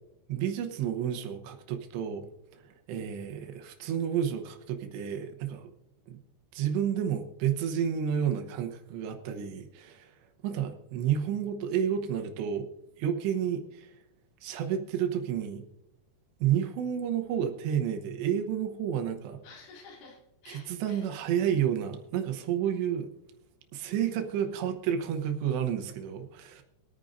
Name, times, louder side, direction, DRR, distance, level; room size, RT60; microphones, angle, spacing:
voice 1, 0.3-2.3 2.5-5.7 6.1-6.2 6.5-10.1 10.4-12.7 13.0-14.0 14.4-15.6 16.4-19.4 20.5-23.1 23.7-26.6, right 9 dB, 75° right, 5 dB, 2.8 m, -30 dB
voice 2, 19.4-21.1 23.9-24.8, left 4 dB, 85° left, -1 dB, 5.0 m, -52 dB
24.5 x 9.1 x 2.6 m, 0.90 s
omnidirectional pair, 5.6 m